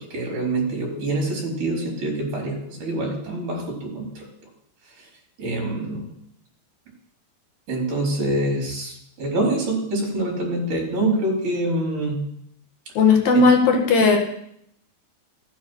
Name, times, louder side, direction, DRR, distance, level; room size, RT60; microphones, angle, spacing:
voice 1, 0.0-4.3 5.0-5.1 5.4-6.1 7.7-12.2 13.3-13.4, right 2 dB, 45° right, -1 dB, 5.3 m, -25 dB
voice 2, 13.0-14.2, left 4 dB, 60° left, 2 dB, 3.3 m, -16 dB
14.5 x 10.0 x 6.3 m, 0.72 s
omnidirectional pair, 5.1 m